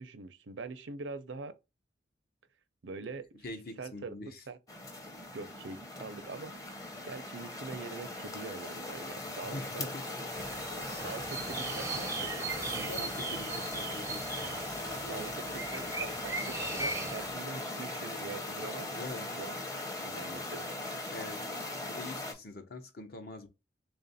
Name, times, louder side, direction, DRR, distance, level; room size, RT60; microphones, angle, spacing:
voice 1, 0.0-1.5 2.8-4.1 4.5-4.6 5.3-6.5 7.0-9.9 11.0-12.5 15.0-15.3 15.5-18.9 19.3-20.7, right 4 dB, 80° right, 0.5 m, -44 dB
voice 2, 3.4-4.4 9.4-10.6 12.7-14.3 15.0-15.3 19.0-19.4 21.1-21.5 21.8-23.5, left 2 dB, 55° left, 0.8 m, -44 dB
sound 1, 4.7-22.3, left 2 dB, 20° left, 0.7 m, -39 dB
sound 2, 10.3-17.3, right 3 dB, 15° right, 0.5 m, -38 dB
3.5 x 2.4 x 4.0 m
head